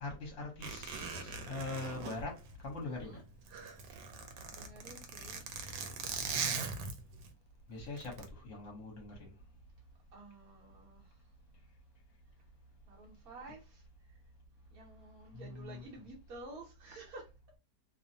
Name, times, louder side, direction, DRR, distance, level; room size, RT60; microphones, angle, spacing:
voice 1, 0.0-2.4 2.6-3.2 7.7-9.1 15.3-15.8, left 3 dB, 55° left, 1.1 m, -42 dB
Zipper (clothing), 0.6-3.0 3.3-7.3 8.0-8.3, right 5 dB, 90° right, 1.2 m, -40 dB
voice 2, 2.8-3.2 4.5-5.5 10.1-11.2 12.9-14.2 14.7-17.3, right 2 dB, 65° right, 1.1 m, -52 dB
2.9 x 2.0 x 2.6 m
omnidirectional pair, 1.8 m